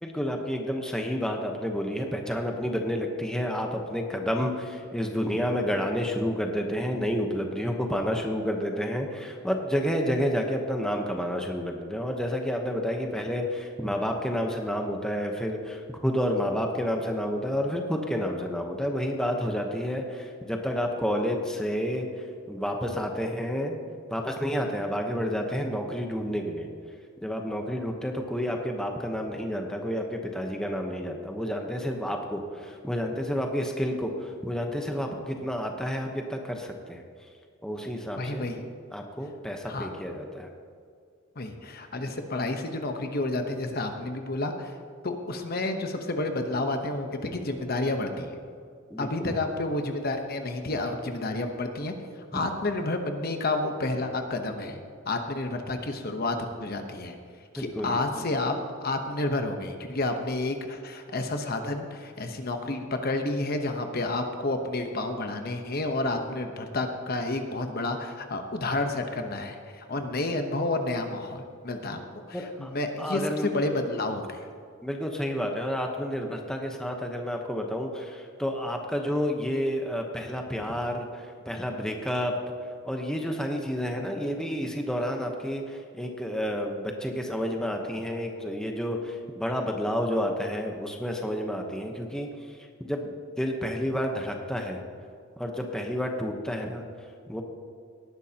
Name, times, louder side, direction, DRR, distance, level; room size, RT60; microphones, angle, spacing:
voice 1, 0.0-22.1 22.5-23.8 24.1-26.7 27.2-37.0 37.6-38.5 38.9-40.5 48.9-49.4 57.6-58.0 72.3-72.7 73.0-73.5 74.8-82.3 82.8-92.3 92.8-94.8 95.4-96.8 97.3-97.4, equal, 5° left, 2 dB, 0.9 m, -30 dB
voice 2, 38.2-38.6 39.7-39.9 41.4-44.7 45.0-48.4 49.0-51.9 52.3-54.8 55.1-57.2 57.5-58.6 58.8-74.4, left 2 dB, 45° left, 5 dB, 1.0 m, -30 dB
18.5 x 11.0 x 2.9 m, 2.2 s
head